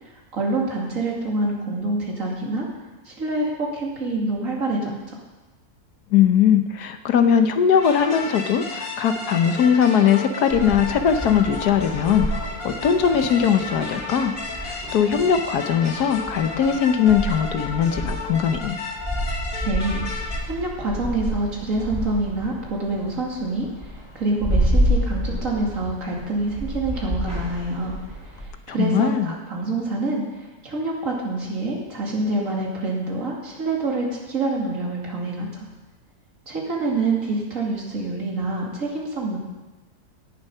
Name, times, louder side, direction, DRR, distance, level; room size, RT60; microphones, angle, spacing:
voice 1, 0.3-2.7 3.1-5.2 19.6-20.0 20.4-27.9 28.4-35.7 36.5-39.4, right 2 dB, 55° right, -2 dB, 2.8 m, -26 dB
voice 2, 6.1-14.3 14.6-18.8 28.8-29.3, left 8 dB, 75° left, 8 dB, 1.4 m, -20 dB
sound 1, 7.8-20.4, left 3 dB, 60° left, 2.3 m, -33 dB
sound 2, 10.5-28.5, equal, 10° right, 4.2 m, -29 dB
17.5 x 7.2 x 5.5 m, 1.1 s
omnidirectional pair, 1.7 m